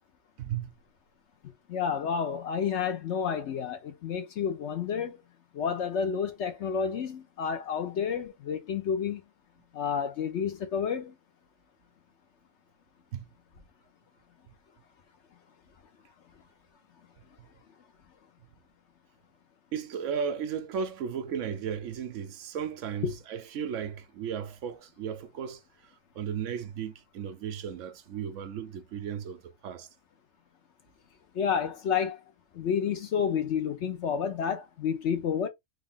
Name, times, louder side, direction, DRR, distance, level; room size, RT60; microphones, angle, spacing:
voice 1, 0.4-0.7 13.1-13.3 19.7-29.9, right 7 dB, 65° right, 0.9 m, -35 dB
voice 2, 1.7-5.2 5.5-9.2 9.7-11.1 23.0-23.1 31.3-32.2 32.5-35.5, left 7 dB, 60° left, 0.8 m, -30 dB
3.4 x 2.4 x 3.5 m
omnidirectional pair, 1.5 m